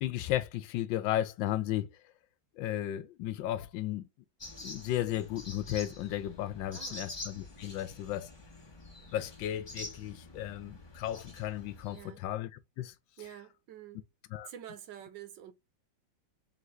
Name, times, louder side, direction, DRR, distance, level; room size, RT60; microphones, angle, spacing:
voice 1, 0.0-1.9 2.6-4.1 4.6-8.3 9.1-12.5 12.8-12.9 14.3-14.5, left 13 dB, 85° left, 1.4 m, -34 dB
sound 1, 4.4-12.0, left 2 dB, 20° left, 0.9 m, -47 dB
voice 2, 6.6-7.0 11.9-12.2 13.2-14.1 14.4-15.5, right 11 dB, 75° right, 1.5 m, -48 dB
3.9 x 3.5 x 3.0 m
omnidirectional pair, 2.0 m